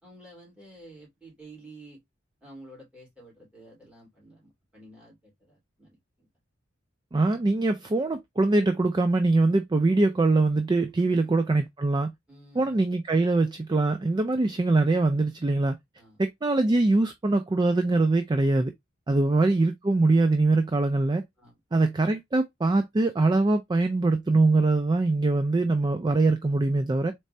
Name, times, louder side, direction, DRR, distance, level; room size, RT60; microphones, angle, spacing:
voice 1, 0.0-2.0 2.4-6.3 11.1-11.3 12.3-12.8 16.0-16.2 19.1-19.2 21.4-21.6, right 1 dB, 5° right, 2.7 m, -50 dB
voice 2, 7.1-12.1 12.6-15.8 16.2-18.7 19.1-21.2 21.7-27.1, right 2 dB, 20° right, 0.4 m, -23 dB
4.2 x 3.3 x 2.6 m
head